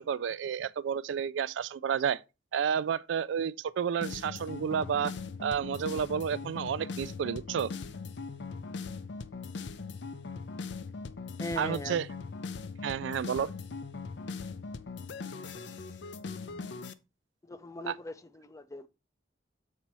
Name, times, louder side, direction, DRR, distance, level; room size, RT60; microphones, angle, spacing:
voice 1, 0.0-2.2 2.5-5.1 5.4-7.7 11.6-12.1 12.8-13.5 17.9-18.0, right 7 dB, 85° right, 0.3 m, -31 dB
sound 1, 4.0-16.9, left 4 dB, 70° left, 0.5 m, -40 dB
voice 2, 11.4-12.0 17.4-18.9, left 1 dB, 15° left, 0.4 m, -39 dB
7.4 x 4.1 x 4.6 m
head